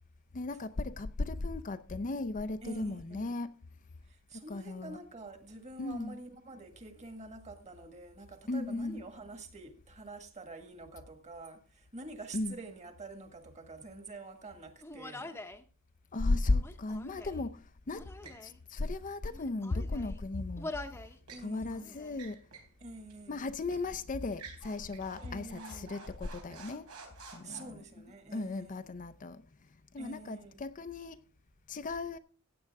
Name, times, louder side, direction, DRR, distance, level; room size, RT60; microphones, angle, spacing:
voice 1, 0.3-3.5 4.3-5.0 5.8-6.2 8.5-9.0 12.3-12.6 16.1-18.1 18.4-20.7 21.4-22.4 23.3-26.9 27.3-27.8 28.3-29.4 29.9-31.2 31.7-32.2, left 2 dB, 35° left, 0.5 m, -35 dB
voice 2, 2.6-3.5 4.0-15.4 21.3-22.0 22.8-23.4 25.2-26.1 27.4-28.9 30.0-30.6, right 2 dB, 30° right, 1.7 m, -47 dB
Human voice, 14.8-15.6 16.5-17.5 17.9-18.6 19.2-20.2 20.6-21.2 21.5-22.2, left 2 dB, 10° left, 0.8 m, -45 dB
sound 1, 18.2-18.5 20.7-21.5 22.1-22.8 23.1-23.2 23.7-23.9 24.3-27.6, right 4 dB, 85° right, 3.7 m, -51 dB
15.5 x 8.7 x 3.5 m
head